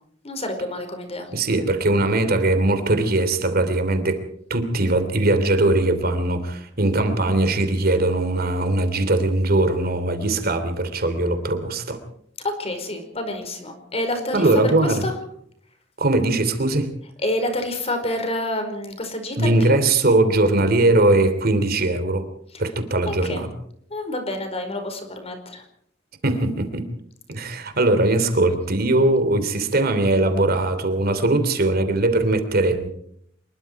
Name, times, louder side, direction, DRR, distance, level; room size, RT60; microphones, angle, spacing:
voice 1, 0.2-1.3 12.4-15.1 17.2-19.8 22.5-22.6 23.1-23.4 23.9-25.6, left 1 dB, 35° left, 6 dB, 4.9 m, -28 dB
voice 2, 1.3-4.2 4.5-12.0 14.3-15.0 16.0-16.9 19.4-22.3 22.6-23.5 26.2-26.9 27.3-32.9, right 2 dB, 55° right, 9 dB, 3.0 m, -20 dB
26.0 x 22.0 x 4.7 m, 0.68 s
head